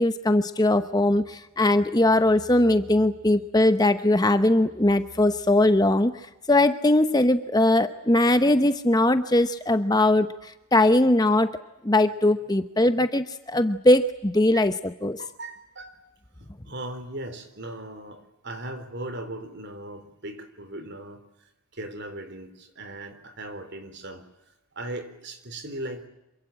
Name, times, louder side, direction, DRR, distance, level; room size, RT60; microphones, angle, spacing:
voice 1, 0.0-6.1 6.5-11.5 11.8-15.2, left 1 dB, 15° left, 10 dB, 0.9 m, -20 dB
voice 2, 15.2-16.0 16.4-24.3 24.7-26.1, right 1 dB, 50° right, 10 dB, 3.8 m, -38 dB
27.0 x 23.5 x 8.9 m, 0.91 s
head